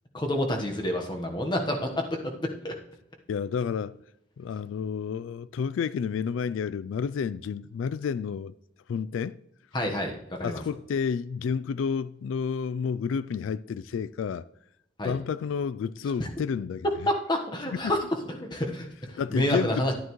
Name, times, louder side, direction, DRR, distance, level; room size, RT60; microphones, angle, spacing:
voice 1, 0.1-2.7 9.7-10.6 15.0-15.2 17.1-19.9, left 1 dB, 20° left, 1.2 m, -29 dB
voice 2, 3.3-4.0 4.4-8.5 8.9-9.4 10.4-14.5 15.0-16.9 17.7-17.8 19.2-19.9, left 6 dB, 80° left, 0.3 m, -30 dB
11.5 x 10.0 x 3.1 m
head